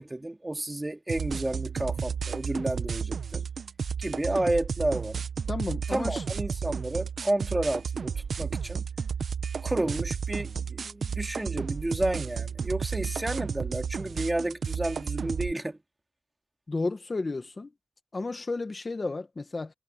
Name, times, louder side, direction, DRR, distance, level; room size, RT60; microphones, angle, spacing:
voice 1, 0.0-3.4 4.0-5.2 5.9-8.8 9.6-15.8, right 1 dB, 15° right, 2.6 m, -31 dB
sound 1, 1.1-15.5, right 6 dB, 70° right, 0.9 m, -32 dB
voice 2, 5.5-6.2 16.7-17.7 18.1-19.7, left 3 dB, 35° left, 1.8 m, -32 dB
wide cardioid pair, 135°, 0 cm